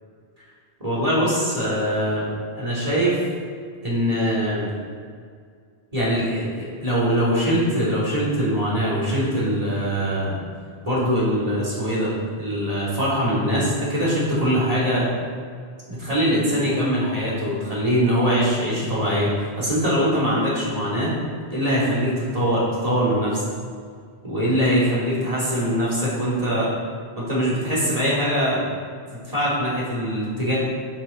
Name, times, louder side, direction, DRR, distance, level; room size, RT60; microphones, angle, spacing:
voice 1, 0.8-2.2 2.5-3.2 3.8-4.7 5.9-10.4 10.8-12.1 12.4-15.1 15.9-19.3 19.6-21.1 21.5-23.4 24.2-26.7 27.2-28.6 29.1-30.6, equal, 35° right, -8 dB, 3.0 m, -22 dB
10.5 x 6.8 x 4.3 m, 2.1 s
omnidirectional pair, 1.1 m